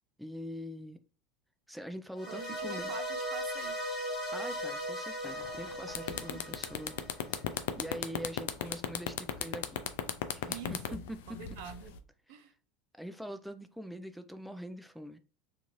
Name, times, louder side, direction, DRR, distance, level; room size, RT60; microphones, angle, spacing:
voice 1, 0.2-1.0 1.7-2.9 4.3-7.0 7.3-7.4 7.8-9.8 10.3-10.8 11.1-11.2 12.3-12.4 12.9-15.2, equal, ahead, 0.3 m, -43 dB
sound 1, 2.1-7.4, equal, 25° left, 1.2 m, -38 dB
voice 2, 2.3-3.8 6.1-6.4 10.5-11.0 11.3-11.9 12.3-12.5, right 7 dB, 70° right, 0.5 m, -46 dB
sound 2, 5.1-8.2 9.3-9.4, left 4 dB, 55° left, 0.7 m, -55 dB
sound 3, 5.4-5.6 5.9-12.0, left 11 dB, 75° left, 0.3 m, -35 dB
2.5 x 2.4 x 3.0 m
hypercardioid pair, 90°, 0 cm